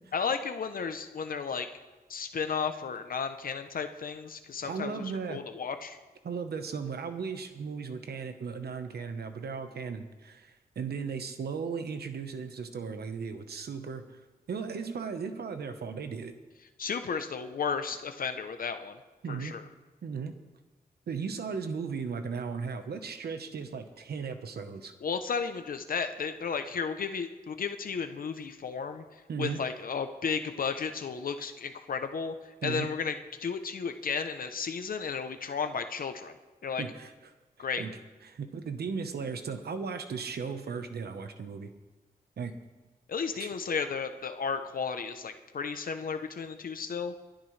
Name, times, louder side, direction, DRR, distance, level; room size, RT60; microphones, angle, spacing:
voice 1, 0.1-1.7 2.1-5.0 5.3-6.0 16.8-18.9 19.3-19.6 25.0-29.0 29.4-32.3 32.6-36.3 36.6-36.8 37.6-37.8 43.1-47.1, left 6 dB, 65° left, 8 dB, 0.7 m, -33 dB
voice 2, 4.6-5.4 6.2-14.0 14.5-16.3 19.2-19.5 20.0-20.3 21.1-24.9 29.3-29.6 32.6-32.9 36.8-37.1 37.6-38.0 38.2-41.7 42.4-42.5 43.4-43.5, right 5 dB, 90° right, 7 dB, 1.0 m, -36 dB
22.5 x 11.5 x 3.2 m, 1.2 s
wide cardioid pair, 160°, 16 cm